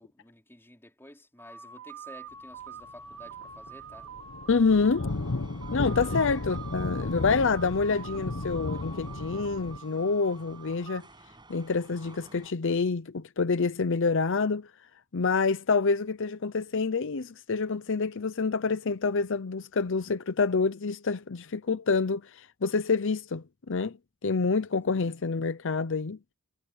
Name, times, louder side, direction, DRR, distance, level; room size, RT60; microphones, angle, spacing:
voice 1, 0.0-4.1 6.1-6.4 24.7-25.1, left 1 dB, 10° left, 4.5 m, -52 dB
sound 1, 1.4-11.0, right 6 dB, 75° right, 2.4 m, -46 dB
sound 2, 3.1-3.3 3.5-9.8, left 2 dB, 85° left, 1.1 m, -34 dB
voice 2, 4.5-5.1 5.7-11.0 11.5-14.7 15.1-24.0 24.2-26.2, left 4 dB, 65° left, 0.7 m, -27 dB
sound 3, 5.1-12.5, right 2 dB, 20° right, 7.2 m, -54 dB
head